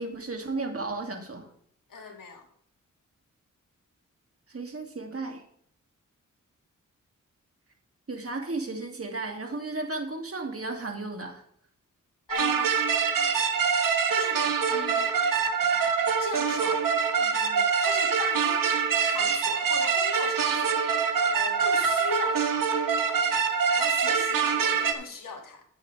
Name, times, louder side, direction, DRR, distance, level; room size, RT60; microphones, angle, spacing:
voice 1, 0.0-1.5 1.9-2.0 4.5-5.4 8.1-11.4, right 3 dB, 45° right, 3 dB, 2.6 m, -34 dB
voice 2, 1.9-2.5 12.3-12.8 14.1-14.4 14.7-15.1 16.2-16.9 17.2-20.8 21.3-22.7 23.7-25.7, left 5 dB, 80° left, 3 dB, 2.3 m, -39 dB
sound 1, 12.3-24.9, right 6 dB, 85° right, 1.3 m, -25 dB
13.0 x 8.9 x 3.4 m, 0.65 s
cardioid pair, 50°, 32 cm